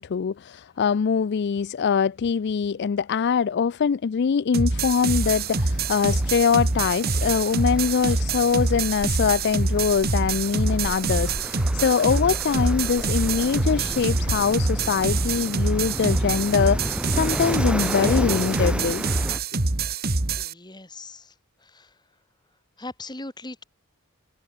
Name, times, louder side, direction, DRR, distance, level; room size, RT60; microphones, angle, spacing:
voice 1, 0.0-19.0, left 6 dB, 50° left, 0.4 m, -23 dB
sound 1, 4.5-20.5, right 3 dB, 45° right, 1.7 m, -25 dB
sound 2, 5.0-19.4, equal, 5° right, 1.7 m, -34 dB
voice 2, 20.4-21.3 21.6-21.9 22.8-23.6, left 2 dB, 20° left, 3.4 m, -39 dB
head